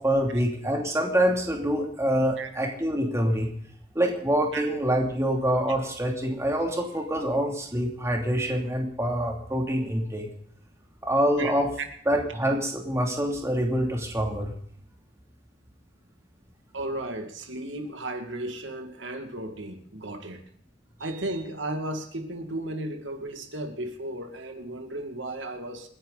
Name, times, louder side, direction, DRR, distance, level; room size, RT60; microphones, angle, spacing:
voice 1, 0.0-3.5 3.9-10.3 11.0-11.7 12.1-14.5, equal, 15° right, 0 dB, 3.0 m, -25 dB
voice 2, 16.7-20.4 21.0-25.9, right 1 dB, 85° right, 5 dB, 2.3 m, -34 dB
28.0 x 10.5 x 4.1 m, 0.65 s
head